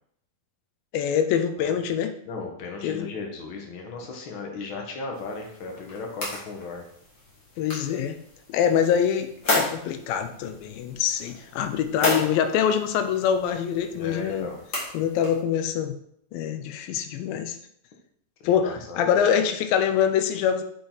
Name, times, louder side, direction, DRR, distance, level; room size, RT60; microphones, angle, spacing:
voice 1, 0.9-2.1 2.8-3.1 7.6-8.2 8.5-14.5 14.9-16.0 16.3-17.6 18.4-20.6, left 8 dB, 85° left, 8 dB, 2.4 m, -24 dB
voice 2, 2.2-6.8 13.9-14.6 18.4-19.3, left 3 dB, 65° left, 2 dB, 1.2 m, -36 dB
sound 1, 5.1-15.4, left 2 dB, 35° left, 2.0 m, -34 dB
8.8 x 5.1 x 3.9 m, 0.70 s
omnidirectional pair, 4.1 m